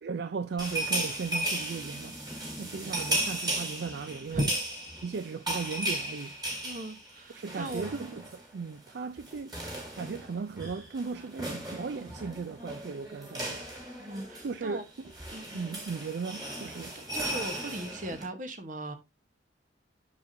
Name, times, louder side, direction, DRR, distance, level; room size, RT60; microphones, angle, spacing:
voice 1, 0.0-2.2 2.6-4.5 5.0-6.4 7.3-9.6 9.9-13.6 14.4-15.1 15.5-16.9, right 5 dB, 60° right, 0.4 m, -37 dB
sound 1, 0.6-8.5 8.7-8.9 9.2-18.2, right 1 dB, 20° right, 2.4 m, -36 dB
voice 2, 6.6-8.0 14.0-14.8 15.3-15.6 17.1-18.9, right 1 dB, 45° right, 1.1 m, -37 dB
6.9 x 6.8 x 2.7 m
head